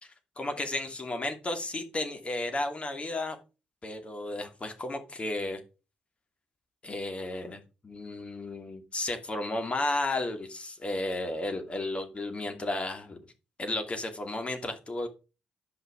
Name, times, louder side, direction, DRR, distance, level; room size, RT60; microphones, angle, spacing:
voice 1, 0.0-3.4 3.8-5.6 6.8-13.2 13.6-15.1, left 2 dB, 30° left, 5 dB, 2.5 m, -33 dB
10.5 x 5.7 x 4.9 m, 0.31 s
figure-of-eight pair, 40°, 4 cm